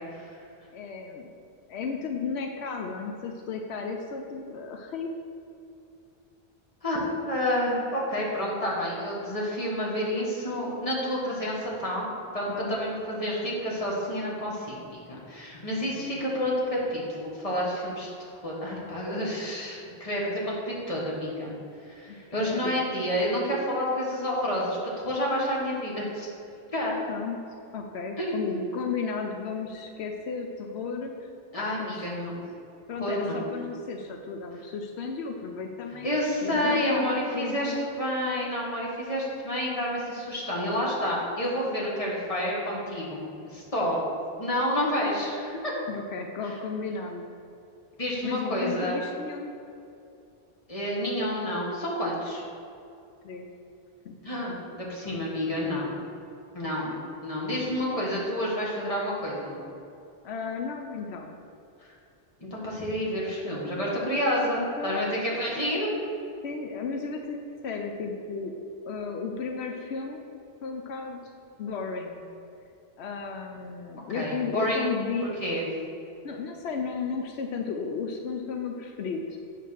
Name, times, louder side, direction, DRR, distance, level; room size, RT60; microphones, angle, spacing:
voice 1, 0.7-1.3 1.7-5.1 12.5-12.8 15.9-16.2 22.1-22.9 27.1-27.4 27.7-31.3 31.6-32.1 32.9-36.1 36.4-37.8 45.9-47.2 48.2-49.5 53.2-53.5 54.0-54.2 56.8-57.0 60.2-61.4 64.6-65.0 65.3-65.6 66.4-68.5 68.9-70.3 70.6-71.2 71.6-72.2 73.0-75.3 76.2-79.4, left 5 dB, 85° left, 3 dB, 0.9 m, -34 dB
voice 2, 6.8-18.1 18.4-21.5 21.8-26.3 26.7-27.0 28.2-28.4 31.5-32.4 33.0-33.4 36.0-43.2 43.5-44.0 44.4-45.7 48.0-49.0 50.7-52.4 54.2-55.9 56.5-56.9 57.2-59.5 62.4-65.9 74.1-74.8 75.2-75.6, equal, 35° left, -5 dB, 1.7 m, -29 dB
8.3 x 3.9 x 6.3 m, 2.6 s
omnidirectional pair, 1.1 m